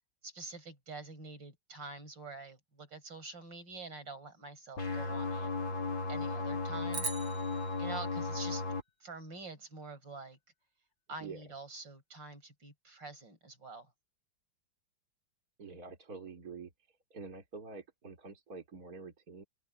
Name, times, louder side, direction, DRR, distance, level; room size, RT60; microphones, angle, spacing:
voice 1, 0.2-5.5 6.1-7.1 7.8-8.6 9.0-10.4 11.1-13.9, right 3 dB, 60° right, 6.3 m, -46 dB
sound 1, 4.8-8.8, left 3 dB, 75° left, 3.9 m, -35 dB
sound 2, 6.9-9.3, right 3 dB, 80° right, 6.9 m, -43 dB
voice 2, 15.6-16.7 17.1-19.4, right 4 dB, 45° right, 3.9 m, -46 dB
open air
omnidirectional pair, 2.2 m